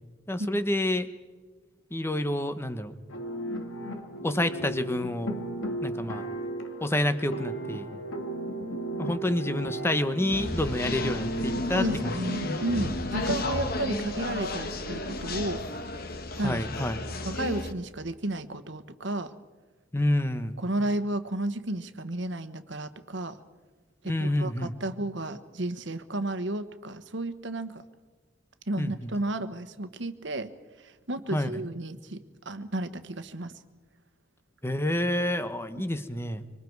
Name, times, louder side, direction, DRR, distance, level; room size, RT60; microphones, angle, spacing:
voice 1, 0.3-1.1 1.9-2.9 4.2-5.4 5.8-6.3 6.8-7.9 9.0-12.1 12.4-12.6 13.9-14.3 16.4-17.0 19.9-20.6 24.0-24.7 28.8-29.1 31.3-31.6 34.6-36.4, left 1 dB, 15° left, 10 dB, 1.1 m, -28 dB
sound 1, 3.1-13.4, right 1 dB, 85° left, 2.2 m, -35 dB
sound 2, 10.3-17.7, left 2 dB, 50° left, 1.5 m, -33 dB
voice 2, 11.7-15.8 16.4-16.6 17.2-19.3 20.6-23.4 24.0-27.8 28.7-30.5 30.8-33.5, right 1 dB, 65° right, 11 dB, 1.3 m, -33 dB
25.5 x 25.5 x 4.7 m, 1.3 s
head